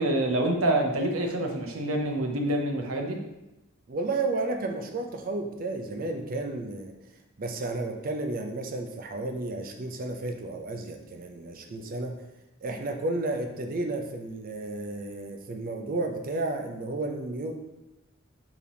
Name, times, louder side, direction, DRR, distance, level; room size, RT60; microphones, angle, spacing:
voice 1, 0.0-3.2, right 1 dB, 80° right, 2 dB, 0.7 m, -26 dB
voice 2, 3.9-6.9 7.4-12.2 12.6-17.5, right 2 dB, 45° right, 4 dB, 0.5 m, -32 dB
4.8 x 2.9 x 3.4 m, 0.96 s
head